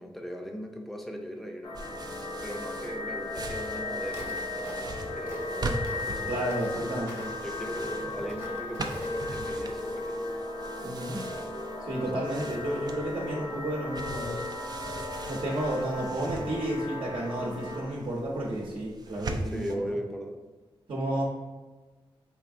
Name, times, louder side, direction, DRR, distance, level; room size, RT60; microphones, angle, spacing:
voice 1, 0.0-1.8 2.4-6.7 7.4-10.2 11.9-12.3 19.4-20.4, equal, ahead, 2 dB, 0.6 m, -39 dB
sound 1, 1.6-17.8, left 2 dB, 50° left, 0.8 m, -36 dB
sound 2, 1.7-19.7, right 2 dB, 45° right, 0.4 m, -41 dB
Walk footsteps, 4.0-9.4, right 1 dB, 25° right, 1.0 m, -47 dB
voice 2, 6.3-7.3 10.8-11.2 11.8-14.4 15.2-19.9 20.9-21.2, right 1 dB, 60° right, -3 dB, 0.9 m, -32 dB
4.4 x 3.4 x 2.5 m, 1.3 s
cardioid pair, 80°, 10 cm